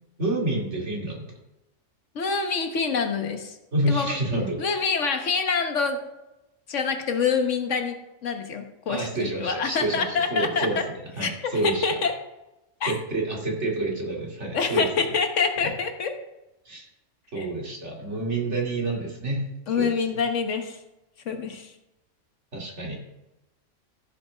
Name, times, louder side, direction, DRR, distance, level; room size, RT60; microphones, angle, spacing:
voice 1, 0.2-1.3 3.7-4.6 8.9-10.8 11.2-11.8 12.8-14.9 15.6-15.7 16.7-16.9 17.3-19.4 19.8-19.9 22.5-23.0, right 2 dB, 65° right, -2 dB, 2.8 m, -28 dB
voice 2, 2.1-3.6 3.9-4.2 4.6-6.0 6.7-8.0 8.2-10.8 11.2-12.1 12.8-12.9 14.5-16.1 17.4-17.5 19.7-20.8 21.3-21.7, left 5 dB, 75° left, 6 dB, 1.5 m, -26 dB
14.5 x 7.4 x 3.5 m, 0.95 s
omnidirectional pair, 1.3 m